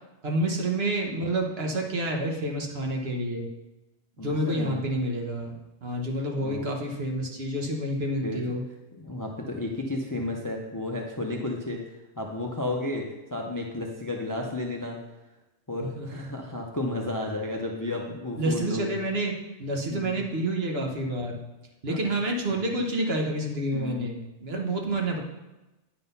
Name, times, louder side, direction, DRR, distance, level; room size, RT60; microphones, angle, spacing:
voice 1, 0.2-3.5 4.2-8.6 16.0-16.2 18.4-21.4 21.8-25.2, right 1 dB, 55° right, 1 dB, 1.3 m, -29 dB
voice 2, 4.2-4.8 6.4-6.7 8.2-8.6 8.9-15.0 15.7-19.0 19.9-20.2 21.9-22.0 22.6-22.8 23.7-24.0, left 2 dB, 20° left, 1 dB, 0.5 m, -33 dB
9.1 x 3.9 x 5.4 m, 1.0 s
omnidirectional pair, 1.3 m